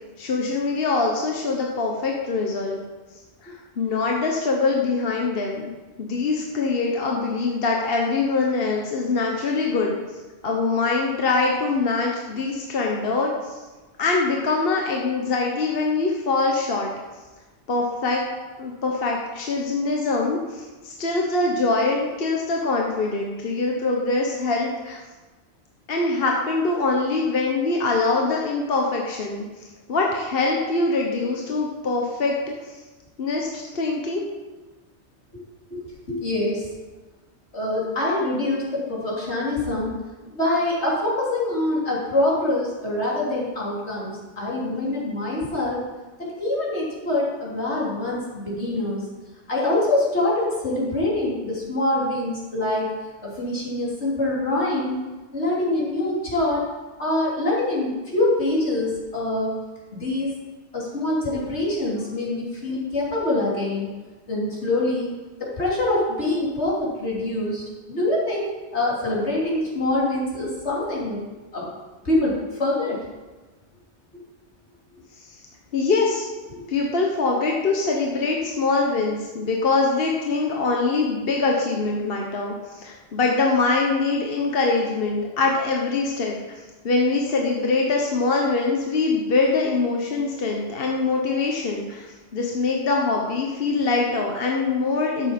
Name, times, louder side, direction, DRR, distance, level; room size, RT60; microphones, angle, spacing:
voice 1, 0.2-2.8 3.4-5.7 6.0-10.0 10.4-13.6 14.0-16.9 17.7-18.2 18.6-25.0 25.9-29.4 29.9-32.3 32.6-32.7 33.2-34.2 75.7-76.2 76.7-86.4 86.8-92.1 92.3-95.3, left 3 dB, 60° left, 0 dB, 1.3 m, -23 dB
voice 2, 35.7-36.7 37.5-39.9 40.3-45.8 46.4-49.0 49.5-52.9 53.2-55.0 55.3-56.6 57.0-59.5 59.9-60.3 60.7-63.9 64.3-65.1 65.4-71.2 71.5-71.7 72.1-72.3 72.6-73.0 74.9-75.0 76.5-76.7, left 1 dB, 90° left, -5 dB, 3.6 m, -25 dB
12.0 x 7.7 x 5.2 m, 1.2 s
omnidirectional pair, 1.1 m